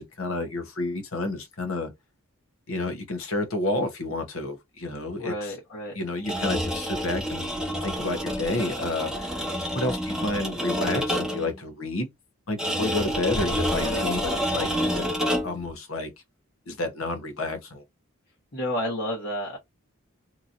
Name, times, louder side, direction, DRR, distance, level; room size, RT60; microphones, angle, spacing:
voice 1, 0.0-1.9 2.7-5.5 5.9-7.5 7.8-9.5 9.7-12.1 12.5-15.0 15.4-16.1 16.7-17.8, left 2 dB, 70° left, 0.9 m, -30 dB
voice 2, 5.2-5.9 13.4-14.2 14.5-14.9 18.5-19.6, equal, 55° left, 1.3 m, -32 dB
sound 1, 6.2-11.5 12.6-15.7, equal, 5° right, 0.9 m, -28 dB
2.9 x 2.7 x 2.5 m
head